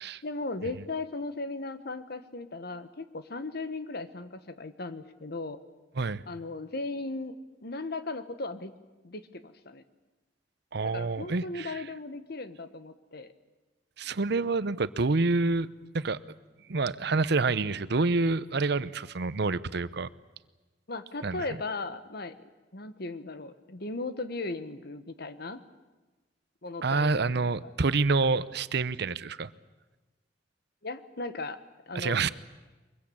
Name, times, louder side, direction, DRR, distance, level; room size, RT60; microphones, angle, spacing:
voice 1, 0.2-5.6 6.3-7.4 7.6-8.7 9.0-9.8 10.9-13.3 20.9-22.3 22.7-25.6 26.6-27.3 30.8-31.6 31.9-32.3, left 3 dB, 60° left, 11 dB, 1.4 m, -37 dB
voice 2, 10.7-11.8 14.0-15.7 15.9-16.2 16.7-20.1 21.2-21.4 26.8-29.5 31.9-32.3, right 3 dB, 65° right, 16 dB, 0.8 m, -27 dB
23.5 x 22.5 x 8.7 m, 1.2 s
head